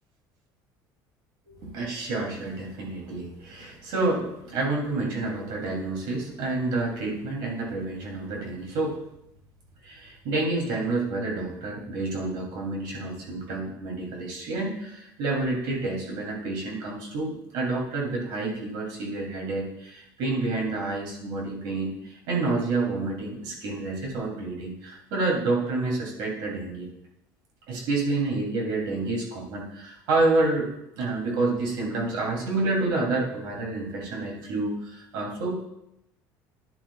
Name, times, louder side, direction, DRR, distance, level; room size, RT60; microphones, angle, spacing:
voice 1, 1.4-9.0 9.8-26.9 27.7-30.7 31.0-35.7, right 2 dB, 70° right, -2 dB, 3.1 m, -29 dB
11.0 x 10.5 x 2.4 m, 0.83 s
cardioid pair, 145°, 8 cm